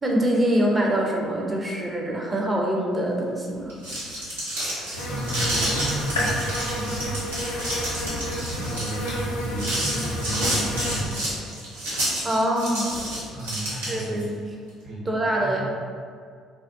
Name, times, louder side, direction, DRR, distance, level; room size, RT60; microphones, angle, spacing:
voice 1, 0.0-3.8 12.2-12.9 13.9-14.4 15.1-15.6, right 1 dB, 25° right, -1 dB, 0.5 m, -24 dB
sound 1, 3.6-14.2, right 1 dB, 85° right, 0.7 m, -30 dB
sound 2, 4.9-11.0, equal, 90° left, 0.4 m, -30 dB
voice 2, 5.1-7.1 8.5-11.2 13.3-14.2 14.8-15.1 15.4-15.6, right 1 dB, 50° right, -6 dB, 0.9 m, -33 dB
2.3 x 2.1 x 2.5 m, 2.1 s
hypercardioid pair, 55°, 0 cm